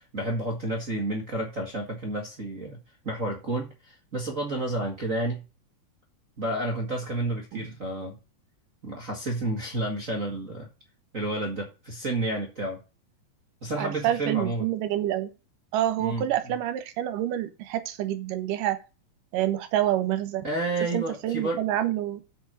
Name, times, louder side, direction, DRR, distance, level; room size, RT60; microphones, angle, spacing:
voice 1, 0.1-2.8 3.0-5.4 6.4-8.2 8.8-10.7 11.1-12.8 13.6-14.6 16.0-16.2 20.4-21.6, right 2 dB, 35° right, -1 dB, 1.4 m, -30 dB
voice 2, 13.8-15.3 15.7-18.8 19.3-20.5 20.9-22.2, right 12 dB, 70° right, 9 dB, 2.6 m, -27 dB
8.4 x 5.9 x 6.2 m, 0.30 s
omnidirectional pair, 4.1 m